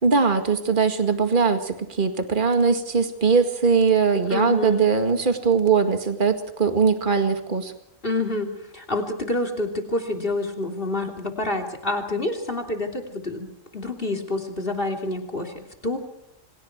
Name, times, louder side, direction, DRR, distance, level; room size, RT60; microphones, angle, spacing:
voice 1, 0.0-7.7, right 5 dB, 40° right, 6 dB, 2.2 m, -21 dB
voice 2, 4.3-4.9 8.0-13.5 13.7-16.0, left 2 dB, 45° left, 3 dB, 3.4 m, -28 dB
29.0 x 25.5 x 4.7 m, 0.80 s
omnidirectional pair, 1.4 m